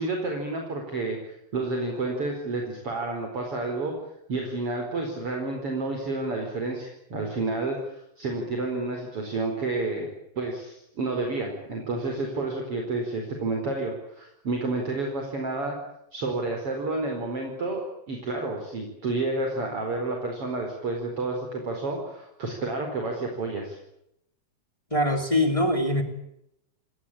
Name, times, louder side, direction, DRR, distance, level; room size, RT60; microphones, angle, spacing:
voice 1, 0.0-3.9 4.3-10.1 10.4-15.8 16.1-17.8 18.1-23.8, right 2 dB, 40° right, 2 dB, 5.3 m, -30 dB
voice 2, 24.9-26.0, left 1 dB, 10° left, 7 dB, 2.8 m, -23 dB
27.5 x 20.0 x 8.7 m, 0.81 s
omnidirectional pair, 3.9 m